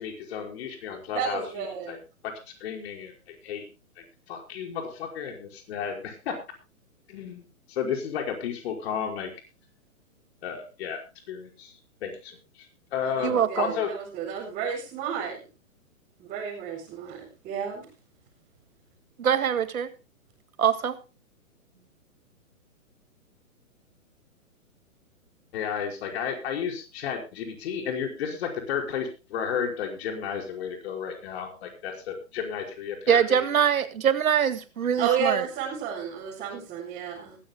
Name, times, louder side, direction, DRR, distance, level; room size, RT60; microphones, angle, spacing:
voice 1, 0.0-2.0 2.2-2.3 2.6-3.7 4.0-6.4 7.1-9.3 10.4-11.0 11.3-12.7 12.9-13.9 25.5-33.4, left 7 dB, 45° left, 5.1 m, -33 dB
voice 2, 1.1-1.9 13.0-15.4 16.2-17.9 35.0-37.4, right 7 dB, 20° right, 4.5 m, -31 dB
voice 3, 13.2-13.7 19.2-19.9 20.6-21.0 33.1-35.5, right 8 dB, 75° right, 2.1 m, -23 dB
21.5 x 14.5 x 2.2 m
hypercardioid pair, 150°, 42 cm